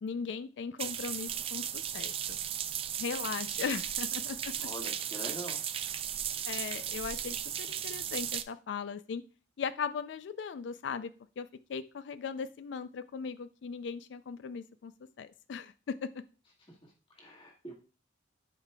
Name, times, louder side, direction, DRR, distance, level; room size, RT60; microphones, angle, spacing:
voice 1, 0.0-2.4 3.0-4.5 6.5-9.2 9.6-14.9 15.2-16.2, left 6 dB, 70° left, 13 dB, 0.3 m, -38 dB
sound 1, 0.8-8.4, right 10 dB, 30° right, 0.3 m, -36 dB
voice 2, 4.6-5.6 16.7-17.7, equal, 25° left, -2 dB, 1.7 m, -44 dB
11.5 x 4.9 x 2.3 m, 0.36 s
head